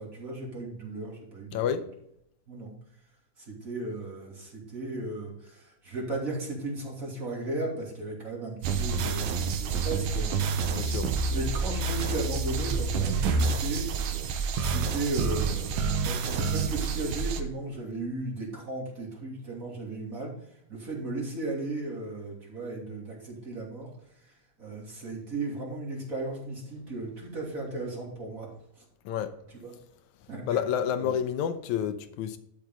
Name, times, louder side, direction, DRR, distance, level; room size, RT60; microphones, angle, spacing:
voice 1, 0.0-1.7 2.5-2.7 3.4-10.3 10.9-11.0 11.3-13.8 14.6-20.3 20.7-23.9 24.6-28.5 28.8-28.9 29.6-29.7 30.3-30.6 31.0-31.1, right 2 dB, 25° right, 3.0 m, -35 dB
voice 2, 1.5-1.9 10.7-11.1 29.1-29.3 30.5-32.4, left 9 dB, 75° left, 1.9 m, -29 dB
sound 1, 8.6-17.4, right 5 dB, 70° right, 2.0 m, -28 dB
12.0 x 6.7 x 3.8 m
omnidirectional pair, 3.9 m